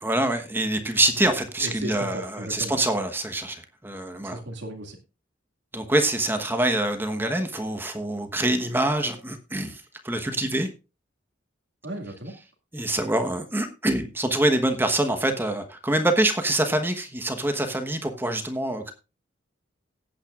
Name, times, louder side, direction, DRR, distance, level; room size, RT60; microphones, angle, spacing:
voice 1, 0.0-4.4 5.7-10.7 12.7-18.9, right 1 dB, 10° right, 6 dB, 1.1 m, -25 dB
voice 2, 1.6-2.7 4.2-5.0 11.8-12.3, right 1 dB, 65° right, 0 dB, 2.1 m, -35 dB
18.0 x 9.0 x 2.4 m, 0.29 s
head